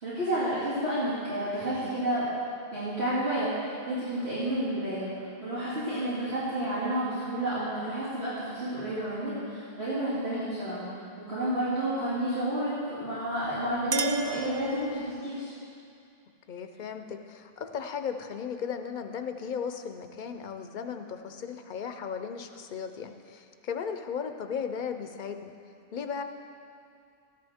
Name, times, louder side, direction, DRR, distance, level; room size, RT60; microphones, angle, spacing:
voice 1, 0.0-2.3 2.7-10.9 11.2-15.5, right 1 dB, 85° right, -12 dB, 2.7 m, -30 dB
Chink clink, 13.3-15.2, right 4 dB, 40° right, 0.4 m, -35 dB
voice 2, 16.5-25.5 25.9-26.2, left 6 dB, 55° left, 7 dB, 0.7 m, -36 dB
13.5 x 10.5 x 3.5 m, 2.5 s
omnidirectional pair, 1.1 m